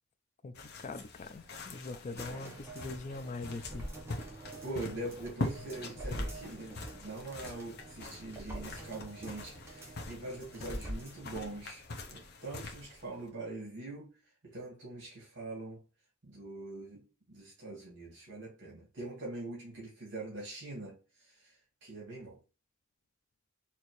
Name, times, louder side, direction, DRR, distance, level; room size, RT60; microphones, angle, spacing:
voice 1, 0.4-3.9, left 3 dB, 35° left, 0.3 m, -42 dB
sound 1, 0.5-13.3, left 2 dB, 50° left, 0.8 m, -44 dB
voice 2, 2.1-2.6 4.6-14.1 14.4-15.8 16.2-22.4, right 2 dB, 60° right, 1.8 m, -43 dB
sound 2, 2.2-11.6 12.0-12.1, right 1 dB, 10° right, 1.0 m, -45 dB
4.3 x 2.8 x 3.0 m
head